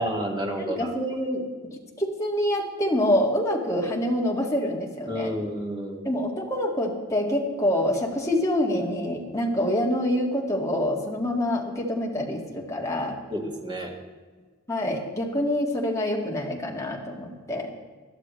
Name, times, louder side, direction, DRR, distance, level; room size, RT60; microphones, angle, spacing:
voice 1, 0.0-0.9 5.1-6.0 13.3-13.9, right 1 dB, 20° right, 1 dB, 1.9 m, -30 dB
voice 2, 0.6-1.4 2.0-5.4 6.0-13.2 14.7-17.7, left 1 dB, 15° left, -2 dB, 2.0 m, -26 dB
21.0 x 12.5 x 3.2 m, 1.4 s
head